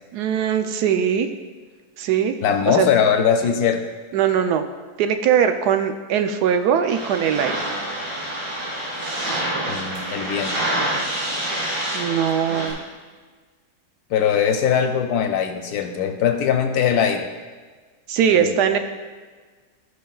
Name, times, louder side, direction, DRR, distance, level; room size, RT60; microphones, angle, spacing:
voice 1, 0.1-1.3 2.0-2.3 2.7-2.9 4.1-4.6 5.0-7.7 11.9-12.8 18.1-18.8, right 8 dB, 90° right, 8 dB, 1.2 m, -20 dB
voice 2, 2.4-3.8 9.7-10.6 14.1-17.3 18.3-18.8, left 8 dB, 75° left, 5 dB, 1.1 m, -21 dB
sound 1, 6.9-12.7, right 1 dB, 35° right, 2.4 m, -27 dB
14.5 x 5.4 x 2.3 m, 1.4 s
omnidirectional pair, 1.7 m